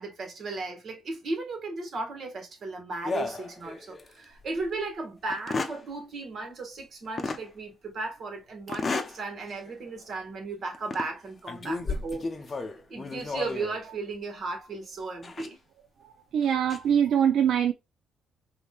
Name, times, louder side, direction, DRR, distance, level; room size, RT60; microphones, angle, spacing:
voice 1, 0.0-12.6 12.9-15.6, right 3 dB, 55° right, 1.7 m, -36 dB
sound 1, 3.0-4.1 4.6-4.7 5.3-5.8 7.2-7.4 8.7-9.2 9.7-9.8 10.7-11.1 11.5-13.8 15.2-15.5 16.4-16.8, left 3 dB, 35° left, 0.6 m, -33 dB
voice 2, 16.3-17.7, right 8 dB, 70° right, 0.4 m, -23 dB
5.2 x 2.7 x 2.3 m
cardioid pair, 90°, 0 cm